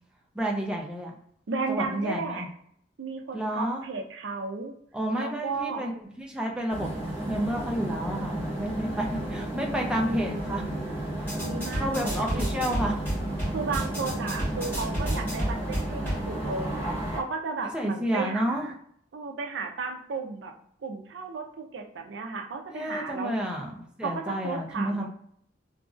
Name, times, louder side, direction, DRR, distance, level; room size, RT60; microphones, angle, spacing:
voice 1, 0.3-1.2 1.7-2.5 3.3-3.8 4.9-6.9 7.3-10.6 11.1-11.4 11.7-13.1 17.6-18.7 22.7-25.1, right 1 dB, 5° right, -1 dB, 0.5 m, -30 dB
voice 2, 1.5-2.5 3.0-4.7 5.1-5.9 10.0-11.1 11.4-12.7 13.5-16.9 17.2-18.7 19.1-20.5 20.8-23.4 24.0-25.1, right 4 dB, 75° right, 3 dB, 0.5 m, -34 dB
sound 1, 6.7-17.2, right 1 dB, 30° left, 1.2 m, -33 dB
sound 2, 11.2-16.2, right 1 dB, 10° left, 1.5 m, -32 dB
3.0 x 2.5 x 2.5 m, 0.67 s
head